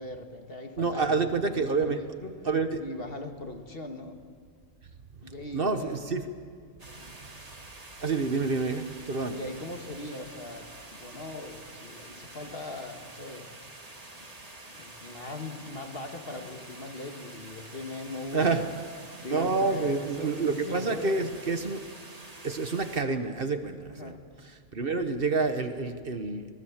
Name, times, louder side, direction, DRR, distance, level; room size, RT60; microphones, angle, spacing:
voice 1, 0.0-1.2 1.6-2.3 2.8-4.2 5.2-6.0 7.0-7.1 9.3-13.5 14.7-18.7 19.2-21.2 23.9-24.2, left 2 dB, 50° left, 4 dB, 1.9 m, -40 dB
voice 2, 0.8-2.0 2.4-2.8 5.2-6.3 8.0-9.4 18.3-18.6 19.3-21.9 22.4-24.2 24.4-26.5, right 4 dB, 50° right, 8 dB, 1.3 m, -28 dB
sound 1, 6.8-23.0, right 2 dB, 30° right, 1.9 m, -47 dB
25.0 x 19.0 x 7.4 m, 2.1 s
omnidirectional pair, 1.3 m